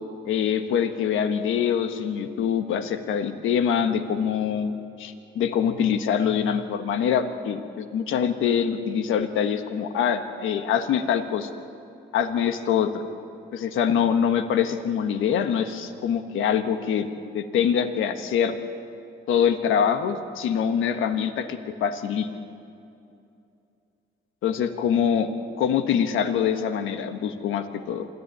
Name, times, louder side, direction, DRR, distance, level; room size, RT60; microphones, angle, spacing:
voice 1, 0.2-4.7 5.0-11.5 12.1-13.0 13.5-17.1 17.3-18.6 19.3-22.3 24.4-25.3 25.6-28.1, left 8 dB, 85° left, 8 dB, 1.4 m, -24 dB
27.0 x 11.0 x 9.9 m, 2.7 s
cardioid pair, 90°, 20 cm